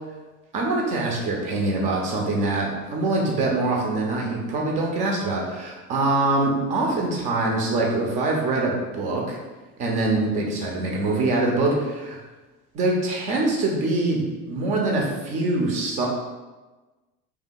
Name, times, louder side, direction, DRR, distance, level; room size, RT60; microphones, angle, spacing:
voice 1, 0.5-9.4 9.8-12.2 12.7-16.1, right 2 dB, 20° right, -1 dB, 0.3 m, -24 dB
2.8 x 2.3 x 4.2 m, 1.2 s
figure-of-eight pair, 75°, 46 cm